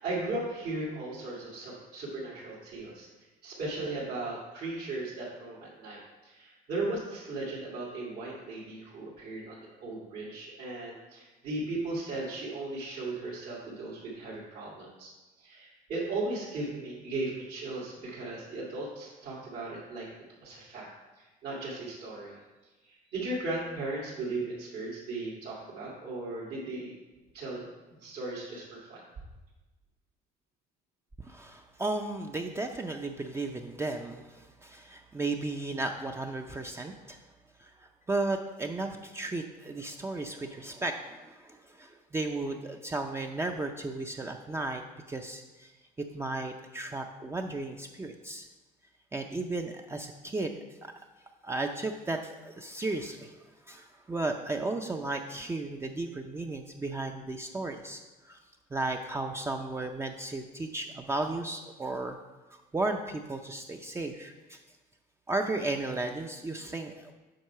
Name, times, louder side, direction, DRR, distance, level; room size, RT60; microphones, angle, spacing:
voice 1, 0.0-15.1 15.4-20.1 20.4-20.9 21.2-26.9 27.3-29.0, right 2 dB, 75° right, -7 dB, 2.3 m, -37 dB
voice 2, 31.2-37.2 37.6-44.8 45.1-45.7 46.0-48.4 49.1-50.5 50.8-50.9 51.4-53.3 53.7-58.4 58.7-62.2 62.5-64.6 65.3-67.1, right 2 dB, 15° right, 3 dB, 0.5 m, -34 dB
7.8 x 4.6 x 5.6 m, 1.2 s
cardioid pair, 110°, 17 cm